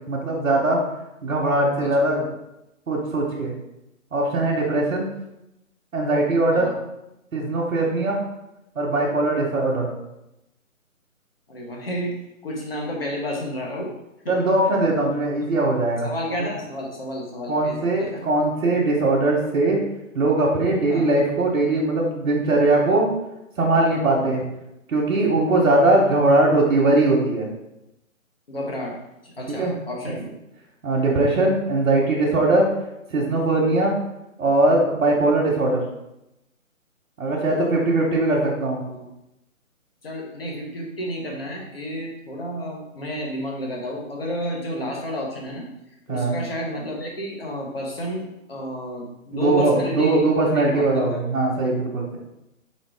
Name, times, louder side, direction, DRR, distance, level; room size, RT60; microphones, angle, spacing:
voice 1, 0.1-0.8 1.2-2.3 2.9-3.5 4.1-5.1 5.9-6.7 7.3-8.2 8.7-9.9 14.3-16.1 17.5-19.8 20.1-23.1 23.6-24.4 24.9-27.5 29.5-29.7 30.8-32.7 33.1-34.0 34.4-35.8 37.2-38.8 46.1-46.3 49.3-52.2, right 2 dB, 75° right, -4 dB, 1.2 m, -20 dB
voice 2, 11.5-12.1 12.4-13.9 14.2-14.3 15.3-15.4 16.0-18.2 20.9-21.1 24.1-24.4 28.5-29.0 29.2-30.3 38.8-39.1 40.0-45.7 46.1-50.2 50.5-51.0, equal, 45° left, -1 dB, 1.1 m, -31 dB
5.1 x 2.7 x 3.5 m, 0.89 s
hypercardioid pair, 175°, 41 cm